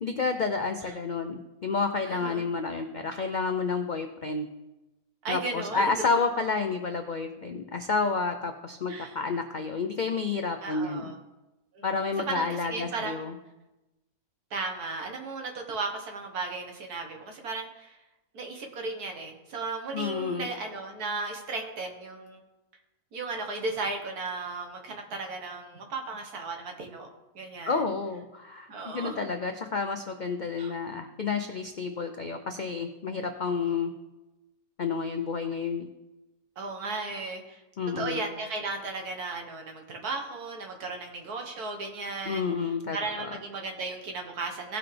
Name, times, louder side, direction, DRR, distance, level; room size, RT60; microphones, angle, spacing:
voice 1, 0.0-4.5 5.3-11.1 11.8-13.4 19.9-20.5 27.7-33.9 34.8-35.9 37.8-38.2 42.3-43.3, left 4 dB, 80° left, 6 dB, 0.4 m, -30 dB
voice 2, 2.1-2.5 5.2-5.9 8.9-9.2 10.6-11.2 11.7-11.9 12.3-13.3 14.5-18.0 18.3-22.4 23.1-27.1 27.4-27.8 28.7-29.3 30.6-30.7 36.6-37.6 38.0-42.4 42.9-44.8, right 3 dB, 75° right, 3 dB, 1.9 m, -35 dB
17.5 x 5.9 x 3.3 m, 1.0 s
omnidirectional pair, 1.6 m